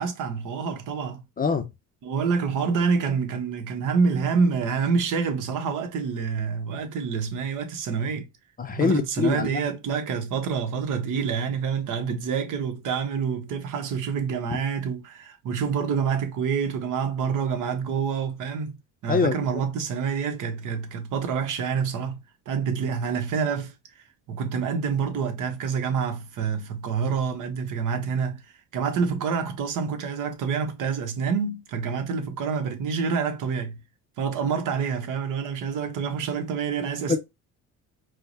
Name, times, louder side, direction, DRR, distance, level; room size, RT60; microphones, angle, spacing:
voice 1, 0.0-1.2 2.0-8.3 8.7-18.8 19.0-22.2 22.5-23.7 24.3-33.8 34.2-37.2, right 6 dB, 65° right, 1.0 m, -27 dB
voice 2, 1.4-1.7 8.6-9.6 19.1-19.4 37.1-37.2, left 5 dB, 25° left, 0.5 m, -23 dB
4.6 x 2.1 x 2.6 m
cardioid pair, 120°, 33 cm